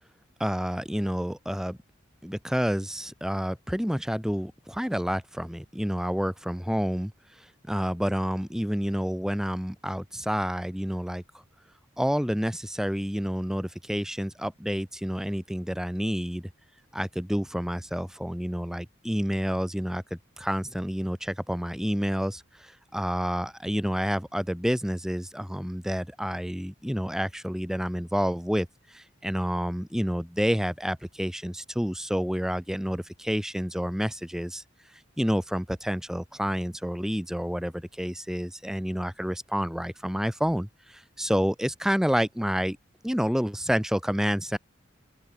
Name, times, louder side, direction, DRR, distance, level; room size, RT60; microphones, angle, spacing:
voice 1, 0.4-1.8 2.2-7.1 7.7-11.2 12.0-16.5 16.9-34.6 35.2-42.8 43.0-44.6, equal, ahead, 1.2 m, -29 dB
open air
head